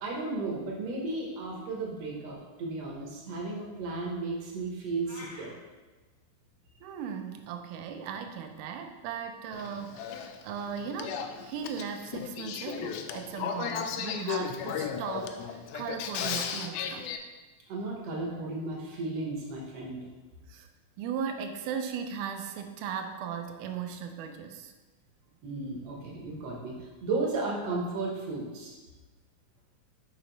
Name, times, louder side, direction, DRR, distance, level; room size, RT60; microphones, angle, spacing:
voice 1, 0.0-5.5 17.7-20.1 25.4-26.8 27.0-28.7, right 3 dB, 65° right, -2 dB, 1.6 m, -34 dB
sound 1, 5.0-5.5, left 2 dB, 65° left, 1.4 m, -46 dB
voice 2, 6.8-17.1 20.5-20.7 21.0-24.7, right 7 dB, 80° right, 6 dB, 1.9 m, -37 dB
Male speech man speaking / Female speech woman speaking / Conversation, 9.5-17.2, left 7 dB, 90° left, 2.4 m, -35 dB
6.6 x 5.1 x 3.9 m, 1.2 s
omnidirectional pair, 4.2 m